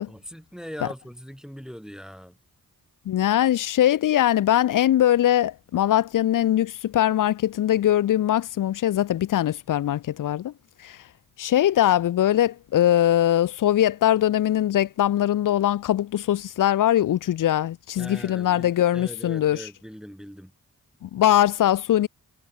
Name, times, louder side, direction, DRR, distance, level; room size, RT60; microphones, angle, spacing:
voice 1, 0.1-2.4 18.0-20.5, equal, ahead, 2.3 m, -40 dB
voice 2, 3.1-10.5 10.8-11.0 11.4-19.7 21.0-22.1, left 12 dB, 55° left, 0.5 m, -21 dB
cardioid pair, 40°, 39 cm